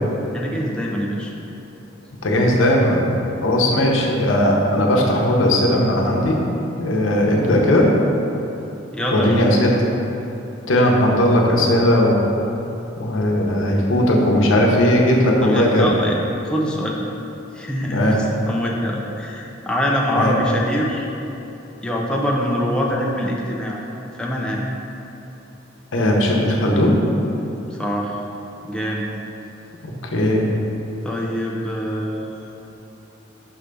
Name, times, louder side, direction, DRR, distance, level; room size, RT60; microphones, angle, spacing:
voice 1, 0.3-1.3 3.7-3.9 8.9-9.4 15.4-16.2 16.4-17.0 17.5-21.1 21.8-23.8 24.1-24.7 27.7-28.2 28.6-29.1 31.0-32.5, equal, 5° left, -3 dB, 0.5 m, -24 dB
voice 2, 2.2-3.1 3.4-6.4 6.8-7.9 9.1-9.7 10.7-12.3 12.9-16.0 17.9-18.2 20.2-20.3 25.9-26.9 30.1-30.5, left 1 dB, 85° left, -1 dB, 0.8 m, -17 dB
5.7 x 3.3 x 5.2 m, 2.9 s
head